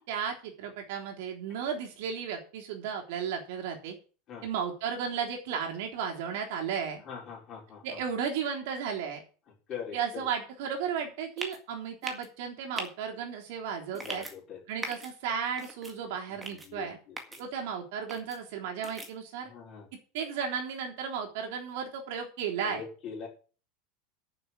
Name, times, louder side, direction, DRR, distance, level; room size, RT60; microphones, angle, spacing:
voice 1, 0.1-4.0 4.4-7.0 7.8-9.2 9.9-14.2 14.7-17.0 17.4-19.5 20.1-22.8, right 7 dB, 55° right, 2 dB, 3.5 m, -34 dB
voice 2, 7.0-8.0 9.7-10.3 14.0-14.6 16.5-17.4 19.4-19.9 22.6-23.3, left 6 dB, 25° left, -1 dB, 5.0 m, -42 dB
sound 1, 11.4-11.6 12.0-12.3 12.8-12.9 13.9-14.3 14.8-15.1 15.6-15.9 16.4-16.7 17.2-17.4 18.1-18.4 18.8-19.1, right 1 dB, 5° right, 1.9 m, -39 dB
11.0 x 7.0 x 7.6 m, 0.37 s
supercardioid pair, 175°, 0 cm